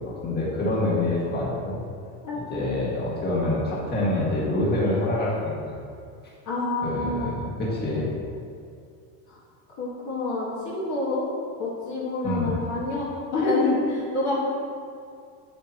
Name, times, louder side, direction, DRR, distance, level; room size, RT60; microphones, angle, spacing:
voice 1, 0.0-1.8 2.3-5.7 6.8-8.1 12.2-12.6, left 2 dB, 20° left, -6 dB, 1.9 m, -26 dB
voice 2, 6.5-7.3 9.3-9.4 9.8-11.3 11.6-14.4, left 2 dB, 40° left, -6 dB, 1.7 m, -27 dB
8.6 x 7.6 x 3.0 m, 2.3 s
supercardioid pair, 145°, 43 cm